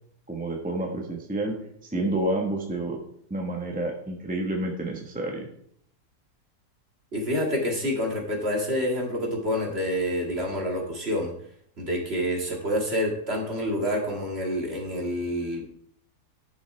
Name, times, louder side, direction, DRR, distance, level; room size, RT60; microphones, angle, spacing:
voice 1, 0.3-3.0 3.3-5.5, right 1 dB, 5° right, 1 dB, 1.0 m, -29 dB
voice 2, 7.1-11.3 11.8-15.6, equal, 40° right, -1 dB, 2.3 m, -27 dB
11.0 x 7.2 x 3.3 m, 0.66 s
omnidirectional pair, 1.7 m